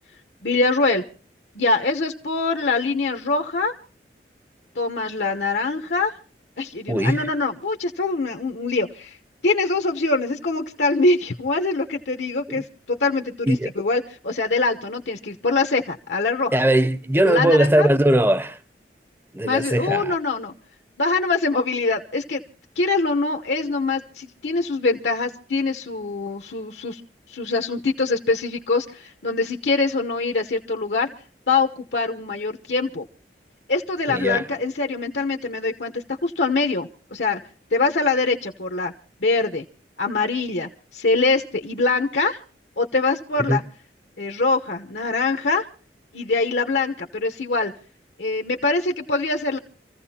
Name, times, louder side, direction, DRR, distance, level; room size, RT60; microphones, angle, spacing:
voice 1, 0.4-1.0 1.5-3.7 4.7-6.1 6.6-9.2 9.4-16.5 17.2-17.9 19.4-20.5 21.0-22.4 22.8-27.0 27.3-31.1 31.5-33.0 33.7-37.4 37.7-38.9 39.2-39.6 40.0-42.4 42.8-43.6 44.2-45.7 46.1-47.7 48.2-49.6, left 3 dB, 75° left, 1.1 m, -23 dB
voice 2, 6.9-7.3 12.6-12.7 13.5-13.7 16.5-18.6 19.3-20.2 34.1-34.5 43.4-43.6, right 1 dB, 10° right, 0.7 m, -20 dB
27.5 x 15.0 x 2.9 m
head